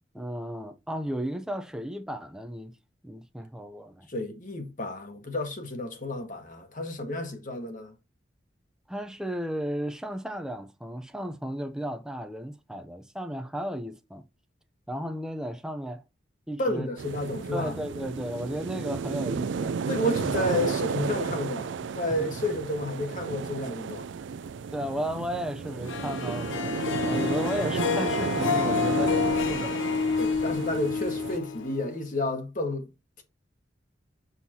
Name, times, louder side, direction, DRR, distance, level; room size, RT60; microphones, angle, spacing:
voice 1, 0.1-2.8 3.0-4.1 8.9-14.2 14.9-16.0 16.5-16.9 17.5-19.8 22.2-22.3 24.7-26.7 27.1-29.8, equal, 5° right, 0.6 m, -34 dB
voice 2, 4.1-7.9 16.6-17.7 19.9-24.1 30.2-32.9, left 1 dB, 45° left, 1.5 m, -31 dB
sound 1, 17.0-31.4, right 6 dB, 70° right, 0.4 m, -33 dB
Harp, 25.9-32.2, left 5 dB, 85° left, 0.5 m, -29 dB
6.1 x 5.5 x 2.8 m
head